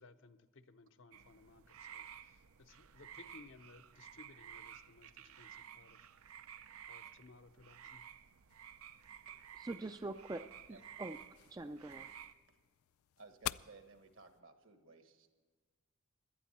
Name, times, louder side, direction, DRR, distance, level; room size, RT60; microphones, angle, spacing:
voice 1, 0.0-6.0 6.9-8.0, left 3 dB, 60° left, 10 dB, 0.7 m, -60 dB
sound 1, 1.1-12.3, right 9 dB, 90° right, 0.6 m, -54 dB
sound 2, 8.5-14.4, left 13 dB, 85° left, 0.3 m, -50 dB
voice 2, 9.6-11.2 11.5-12.1, right 2 dB, 15° right, 8 dB, 0.3 m, -44 dB
voice 3, 13.2-15.3, right 3 dB, 70° right, 6 dB, 1.5 m, -58 dB
17.5 x 12.0 x 4.3 m, 1.5 s
head